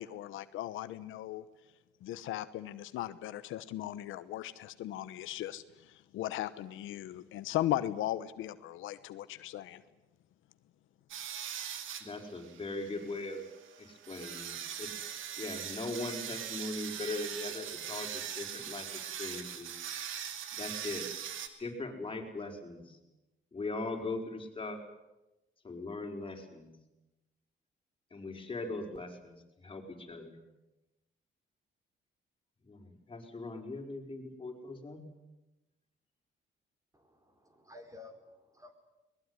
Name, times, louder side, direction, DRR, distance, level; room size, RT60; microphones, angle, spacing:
voice 1, 0.0-1.4 2.0-9.8, left 13 dB, 90° left, 13 dB, 1.0 m, -37 dB
sound 1, 11.1-21.5, right 9 dB, 85° right, 2.4 m, -41 dB
voice 2, 12.0-13.5 13.8-15.1 15.4-19.7 20.5-21.1 21.6-23.0 23.5-24.8 25.6-26.7 28.1-30.4 32.6-35.0, left 2 dB, 25° left, 2 dB, 5.2 m, -40 dB
voice 3, 36.9-38.7, left 2 dB, 15° right, 6 dB, 4.4 m, -53 dB
22.5 x 20.5 x 9.8 m, 1.0 s
cardioid pair, 90°, 20 cm